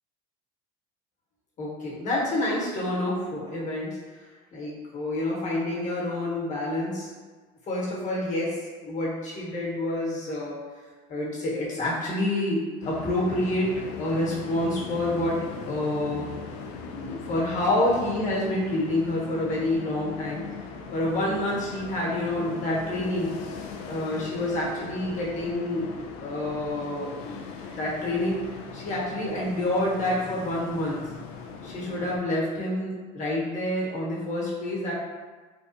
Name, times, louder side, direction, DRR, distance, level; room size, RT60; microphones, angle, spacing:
voice 1, 1.6-4.2 4.5-7.1 7.7-10.6 11.1-15.4 15.7-16.3 16.8-20.4 20.9-23.4 23.9-25.9 26.2-27.4 27.7-28.4 28.7-31.0 31.6-34.9, left 1 dB, 40° left, -5 dB, 1.2 m, -28 dB
sound 1, 12.8-32.2, left 5 dB, 70° left, 0.4 m, -39 dB
3.3 x 2.4 x 2.7 m, 1.4 s
supercardioid pair, 110°, 19 cm